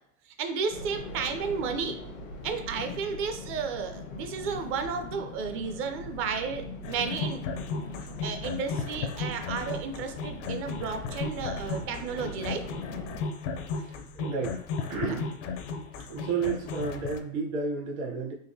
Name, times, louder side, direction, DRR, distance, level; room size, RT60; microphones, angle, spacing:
voice 1, 0.4-2.0 2.4-7.4 8.2-12.7 15.0-15.1, right 5 dB, 30° right, 6 dB, 0.4 m, -33 dB
sound 1, 0.7-13.2, left 2 dB, 80° left, 1.0 m, -41 dB
sound 2, 6.8-17.2, left 4 dB, 60° left, 0.6 m, -35 dB
voice 2, 13.8-14.6 14.9-15.3 16.1-18.3, right 4 dB, 60° right, -1 dB, 1.2 m, -32 dB
3.9 x 2.5 x 2.7 m, 0.64 s
hypercardioid pair, 100°, 43 cm